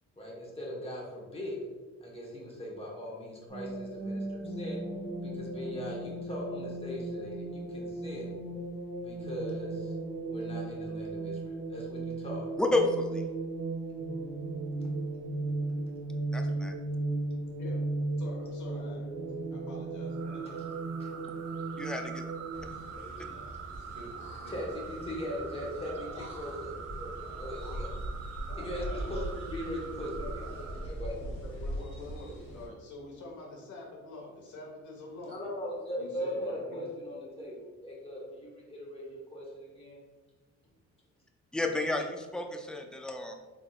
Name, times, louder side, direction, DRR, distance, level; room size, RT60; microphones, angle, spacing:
voice 1, 0.2-1.6 2.0-4.8 5.2-8.3 9.0-9.9 10.2-12.4 21.0-21.4 21.8-21.9 23.7-23.8 24.5-27.9 28.6-31.3 35.2-40.0, left 1 dB, 20° left, -3 dB, 1.2 m, -40 dB
sound 1, 3.5-22.7, right 2 dB, 90° right, 1.3 m, -36 dB
voice 2, 12.6-13.2 16.3-16.8 21.8-22.2 41.5-43.3, left 2 dB, 5° left, 3 dB, 0.4 m, -30 dB
voice 3, 18.2-19.1 19.5-20.6 22.9-23.5 23.9-24.1 24.4-24.5 24.8-24.9 28.5-29.1 30.0-30.6 31.4-35.3 36.0-36.8, left 2 dB, 75° left, -2 dB, 1.2 m, -46 dB
sound 2, 20.1-30.9, right 7 dB, 55° right, 0.5 m, -45 dB
sound 3, 22.5-32.7, right 1 dB, 40° left, 1.0 m, -41 dB
3.8 x 3.5 x 2.3 m, 1.3 s
cardioid pair, 90°, 30 cm